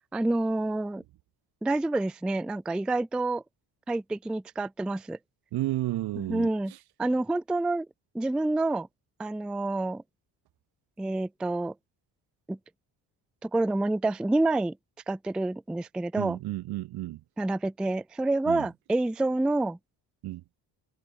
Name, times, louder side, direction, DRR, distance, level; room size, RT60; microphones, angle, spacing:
voice 1, 0.1-1.0 1.6-3.4 3.9-5.2 6.2-6.7 7.0-7.9 8.1-8.9 9.2-10.0 11.0-11.7 12.5-12.6 13.4-14.8 15.1-16.4 17.4-19.8, right 2 dB, ahead, 0.3 m, -28 dB
voice 2, 5.5-6.5 16.2-17.2 18.5-18.7 20.2-20.4, right 16 dB, 50° right, 0.6 m, -32 dB
hypercardioid pair, 45°, 50 cm